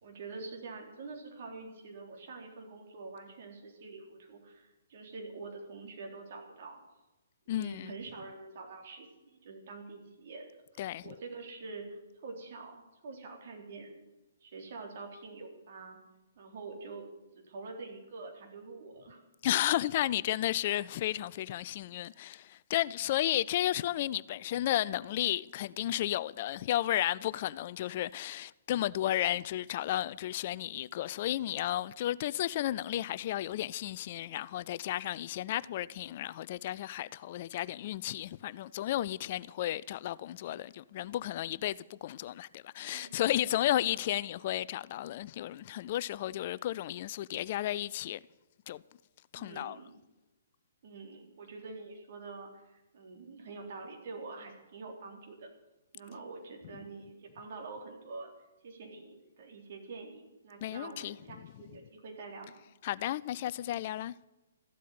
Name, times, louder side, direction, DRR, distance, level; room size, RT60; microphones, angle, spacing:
voice 1, 0.0-6.8 7.5-9.1 9.4-10.5 10.7-14.0 14.4-16.0 16.4-17.1 17.3-19.2 23.9-24.0 35.9-36.0 42.8-43.1 43.9-44.1 49.4-49.9 50.8-55.5 55.9-58.3 58.6-62.5, right 3 dB, 50° right, 3.9 m, -46 dB
voice 2, 7.5-7.9 10.8-11.0 19.4-48.2 48.7-48.8 49.3-49.8 60.6-61.2 62.8-64.1, left 13 dB, 45° left, 0.4 m, -33 dB
14.0 x 8.3 x 9.3 m
figure-of-eight pair, 130°, 0 cm